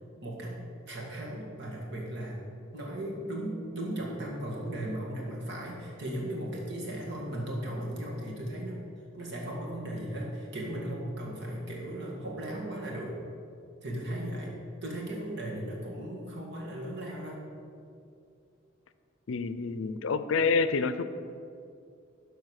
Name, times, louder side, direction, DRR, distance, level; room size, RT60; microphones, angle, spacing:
voice 1, 0.2-0.6 0.9-8.8 9.1-13.1 13.8-17.4, right 1 dB, 60° right, -3 dB, 2.2 m, -36 dB
voice 2, 19.3-21.0, left 4 dB, 80° left, 12 dB, 0.5 m, -27 dB
12.5 x 4.8 x 6.4 m, 2.5 s
head